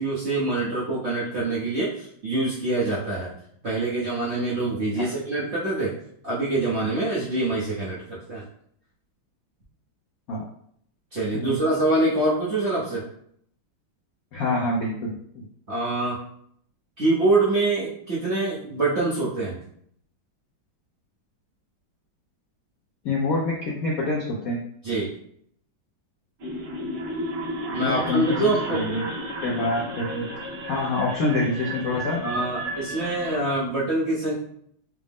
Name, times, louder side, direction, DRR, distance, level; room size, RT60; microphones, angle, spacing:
voice 1, 0.0-3.3 3.6-5.9 6.2-8.4 11.1-13.0 15.7-16.2 17.0-19.6 24.8-25.1 27.7-28.8 32.2-34.3, right 2 dB, 50° right, -8 dB, 0.8 m, -25 dB
voice 2, 14.3-15.1 23.0-24.6 27.8-28.4 28.7-29.1 29.4-30.3 30.6-32.2, left 2 dB, 70° left, -3 dB, 0.8 m, -26 dB
sound 1, 26.4-33.4, right 1 dB, 85° right, 1.8 m, -33 dB
4.8 x 2.0 x 3.5 m, 0.66 s
omnidirectional pair, 2.2 m